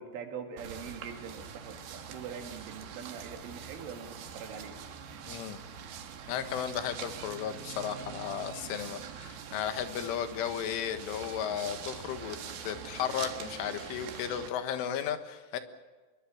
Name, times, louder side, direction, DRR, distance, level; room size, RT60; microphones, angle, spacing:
voice 1, 0.0-4.7, right 6 dB, 80° right, 4 dB, 4.9 m, -43 dB
sound 1, 0.6-14.5, right 7 dB, 60° right, 3.4 m, -44 dB
voice 2, 5.3-5.6 6.3-12.4 12.6-15.6, left 9 dB, 85° left, 9 dB, 4.0 m, -34 dB
25.0 x 22.0 x 7.3 m, 1.4 s
omnidirectional pair, 5.5 m